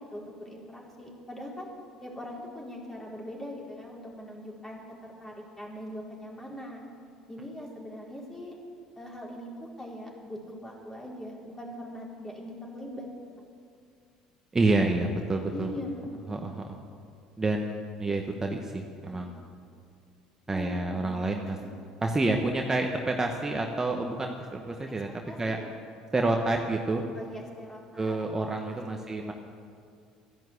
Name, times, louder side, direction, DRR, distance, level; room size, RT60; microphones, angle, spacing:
voice 1, 0.0-1.7 2.0-6.9 7.3-8.5 9.0-13.1 15.5-16.5 19.0-19.2 20.5-21.7 25.2-25.7 27.1-28.2 28.7-29.3, left 1 dB, 15° left, -3 dB, 4.4 m, -41 dB
voice 2, 14.5-15.7 16.3-16.8 17.4-19.4 20.5-21.6 22.0-25.1 25.4-25.6 26.1-27.1 28.0-29.3, right 2 dB, 20° right, 2 dB, 1.3 m, -28 dB
13.0 x 10.5 x 8.2 m, 2.3 s
hypercardioid pair, 65°, 2 cm